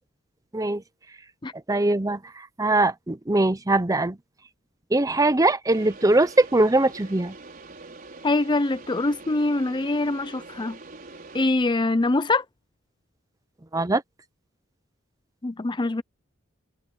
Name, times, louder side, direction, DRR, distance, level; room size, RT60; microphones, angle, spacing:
voice 1, 1.7-4.2 4.9-7.3 13.7-14.0, right 2 dB, 15° right, 0.7 m, -21 dB
sound 1, 5.7-11.5, right 3 dB, 45° right, 4.9 m, -44 dB
voice 2, 8.2-10.8 11.3-12.4 15.4-16.0, left 2 dB, 25° left, 0.5 m, -24 dB
head